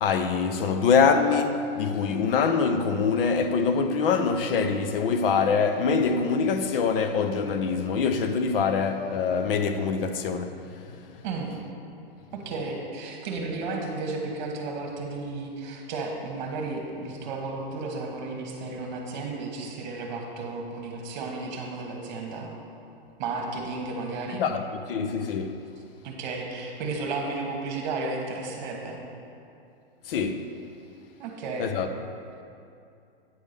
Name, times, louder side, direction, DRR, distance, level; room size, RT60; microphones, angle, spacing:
voice 1, 0.0-11.2 24.4-24.6 24.9-25.7 30.0-30.5 31.6-31.9, left 5 dB, 60° left, 0.6 m, -24 dB
voice 2, 12.3-22.5 23.2-24.4 26.0-29.0 31.2-31.7, right 3 dB, 45° right, 1.3 m, -33 dB
9.4 x 3.6 x 6.7 m
supercardioid pair, 160°, 31 cm